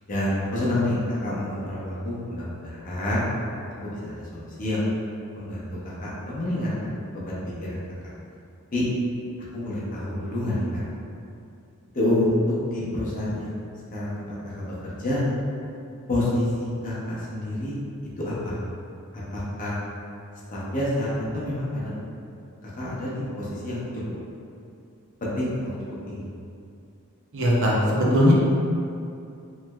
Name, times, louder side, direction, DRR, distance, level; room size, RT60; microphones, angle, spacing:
voice 1, 0.1-3.2 3.8-4.9 5.4-7.8 8.7-8.8 9.5-10.8 11.9-12.4 12.6-13.6 13.9-14.7 15.0-15.3 16.1-17.8 18.2-18.5 19.1-19.8 20.5-21.9 22.6-23.8 25.2-25.7 26.1-26.3, left 1 dB, 35° left, -7 dB, 0.7 m, -28 dB
voice 2, 27.3-28.3, equal, 55° right, -4 dB, 0.6 m, -19 dB
3.2 x 3.0 x 2.2 m, 2.5 s
head